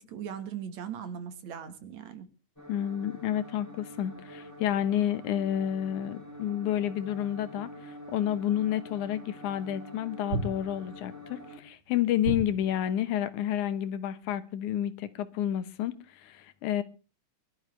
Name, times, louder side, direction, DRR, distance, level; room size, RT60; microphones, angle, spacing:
voice 1, 0.1-2.3, right 8 dB, 70° right, 2.8 m, -39 dB
sound 1, 2.6-11.6, left 1 dB, 5° left, 3.8 m, -46 dB
voice 2, 2.7-16.8, left 11 dB, 85° left, 2.5 m, -30 dB
sound 2, 9.0-9.1 10.3-11.1 12.2-13.0, right 3 dB, 50° right, 3.0 m, -34 dB
23.0 x 12.5 x 3.3 m
omnidirectional pair, 3.4 m